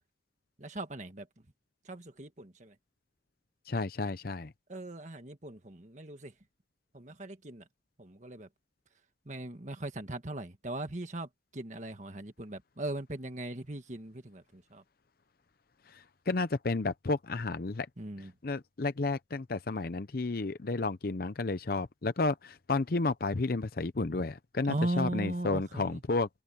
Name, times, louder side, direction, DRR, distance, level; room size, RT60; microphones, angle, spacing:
voice 1, 0.6-1.3 1.9-2.7 4.7-6.3 6.9-7.6 8.0-8.5 9.3-14.8 18.0-18.3 24.7-26.0, right 1 dB, 40° right, 1.6 m, -38 dB
voice 2, 3.7-4.5 15.9-17.9 18.2-26.3, left 3 dB, 50° left, 0.7 m, -32 dB
open air
head